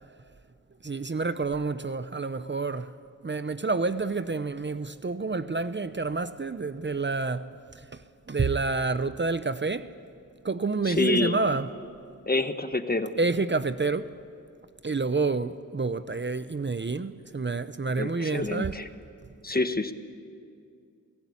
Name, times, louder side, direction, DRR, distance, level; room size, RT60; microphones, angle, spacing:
voice 1, 0.8-2.9 3.2-7.5 7.9-8.0 8.3-9.9 10.4-11.7 13.2-14.1 14.8-18.7, right 3 dB, 35° right, 0.8 m, -28 dB
voice 2, 10.8-11.3 12.3-13.1 18.0-18.9 19.4-19.9, left 2 dB, 30° left, 1.5 m, -27 dB
28.0 x 18.5 x 8.6 m
cardioid pair, 55°, 32 cm